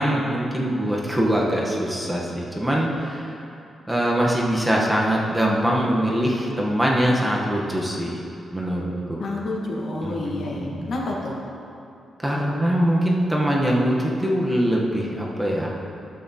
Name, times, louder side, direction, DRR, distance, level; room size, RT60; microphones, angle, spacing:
voice 1, 0.0-3.3 3.9-8.2 8.5-9.2 10.0-10.9 12.2-15.8, equal, 5° right, -3 dB, 0.9 m, -23 dB
voice 2, 9.2-11.4, left 2 dB, 55° left, -2 dB, 1.3 m, -29 dB
12.0 x 8.4 x 2.8 m, 2.7 s
wide cardioid pair, 150°, 0 cm